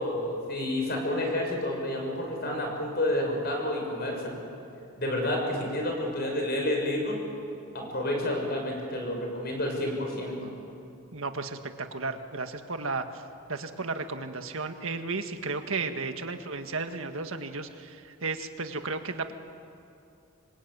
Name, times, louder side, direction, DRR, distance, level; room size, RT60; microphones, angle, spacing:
voice 1, 0.0-4.4 4.9-7.2 7.7-10.5 15.8-15.9, left 1 dB, 45° left, 1 dB, 6.5 m, -30 dB
voice 2, 11.1-13.2 13.5-19.3, right 3 dB, 70° right, 7 dB, 1.7 m, -34 dB
26.5 x 23.5 x 9.4 m, 2.6 s
head